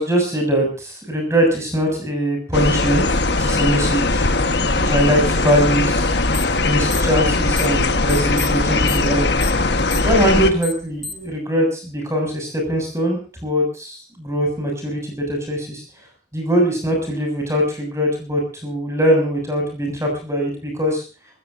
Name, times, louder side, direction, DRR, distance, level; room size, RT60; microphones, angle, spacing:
voice 1, 0.0-3.0 3.4-4.6 4.9-6.2 6.6-9.3 10.0-15.8 16.3-21.0, equal, 15° right, 2 dB, 6.8 m, -21 dB
sound 1, 2.5-10.5, left 3 dB, 60° left, 1.4 m, -19 dB
sound 2, 6.3-6.6 6.9-7.8 8.1-11.3, left 2 dB, ahead, 2.3 m, -32 dB
27.0 x 15.5 x 2.7 m, 0.37 s
head